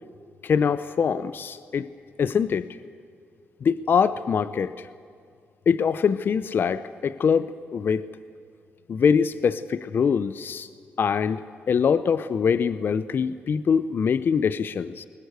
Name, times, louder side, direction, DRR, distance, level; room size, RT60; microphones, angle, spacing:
voice 1, 0.4-1.9 2.2-2.8 3.6-4.9 5.7-8.1 8.9-10.7 11.0-11.4 11.7-15.0, left 6 dB, 55° left, 15 dB, 0.7 m, -23 dB
22.0 x 20.0 x 8.1 m, 2.3 s
cardioid pair, 80°, 4 cm